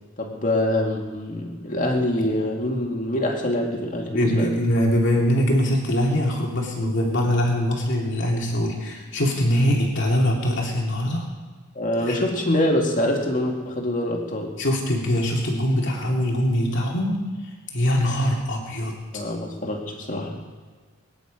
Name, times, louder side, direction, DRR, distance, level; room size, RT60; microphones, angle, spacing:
voice 1, 0.2-4.5 11.8-14.6 19.1-20.3, left 1 dB, 40° left, 1 dB, 2.5 m, -25 dB
voice 2, 4.0-11.3 12.0-12.2 14.6-19.2, equal, 60° left, -1 dB, 2.5 m, -23 dB
23.5 x 10.0 x 5.2 m, 1.4 s
head